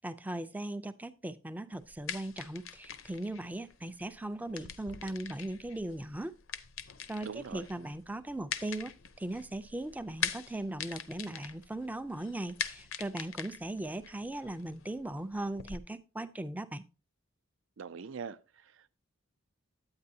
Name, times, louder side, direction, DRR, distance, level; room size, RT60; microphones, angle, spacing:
voice 1, 0.0-6.4 7.1-16.8, right 1 dB, 10° right, 0.4 m, -38 dB
sound 1, 1.7-15.8, left 7 dB, 80° left, 0.7 m, -43 dB
voice 2, 7.2-7.7 17.8-18.9, right 6 dB, 65° right, 0.5 m, -43 dB
9.7 x 8.8 x 2.7 m
head